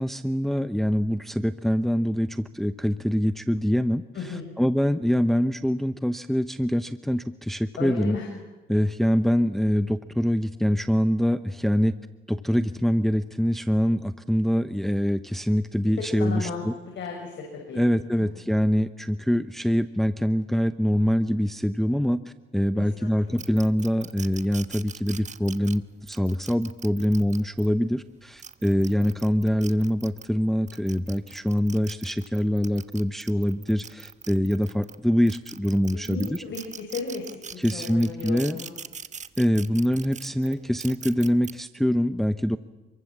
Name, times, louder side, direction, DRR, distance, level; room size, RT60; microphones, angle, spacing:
voice 1, 0.0-4.0 4.6-8.2 8.7-11.9 12.3-16.7 17.8-22.2 22.5-36.4 37.6-38.6 39.4-42.6, equal, ahead, 11 dB, 0.9 m, -24 dB
voice 2, 4.1-4.5 7.8-8.3 15.9-17.8 18.1-18.3 22.7-23.4 35.9-38.8, left 4 dB, 65° left, 1 dB, 6.7 m, -35 dB
sound 1, 23.4-27.7 28.2-30.3 30.7-35.0 35.3-41.5, right 6 dB, 35° right, 1.2 m, -41 dB
28.5 x 23.0 x 7.4 m, 1.1 s
cardioid pair, 90°, 20 cm